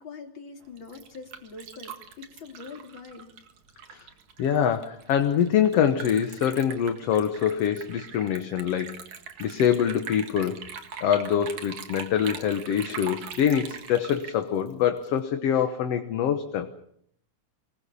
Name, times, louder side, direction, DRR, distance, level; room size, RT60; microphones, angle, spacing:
voice 1, 0.0-3.3, left 4 dB, 40° left, 3 dB, 3.7 m, -43 dB
Liquid, 0.6-15.2, right 7 dB, 75° right, 3.3 m, -42 dB
voice 2, 4.4-9.0 9.4-10.7 11.0-16.7, left 9 dB, 60° left, 7 dB, 2.1 m, -25 dB
26.0 x 21.0 x 7.0 m, 0.68 s
omnidirectional pair, 3.3 m